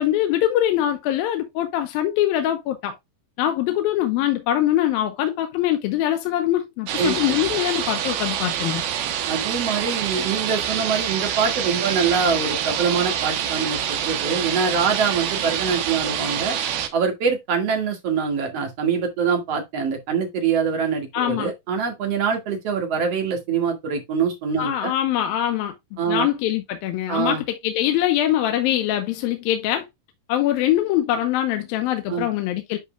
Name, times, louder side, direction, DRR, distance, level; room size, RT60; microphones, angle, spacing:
voice 1, 0.0-2.9 3.4-8.8 21.1-21.5 24.6-25.7 26.1-29.9 30.3-32.8, left 12 dB, 80° left, 2.6 m, -23 dB
sound 1, 6.9-16.9, right 9 dB, 90° right, 3.1 m, -26 dB
voice 2, 9.3-16.6 16.9-24.9 26.0-26.3 27.1-27.4 32.1-32.3, right 6 dB, 45° right, 2.7 m, -24 dB
10.5 x 5.0 x 2.3 m
omnidirectional pair, 4.2 m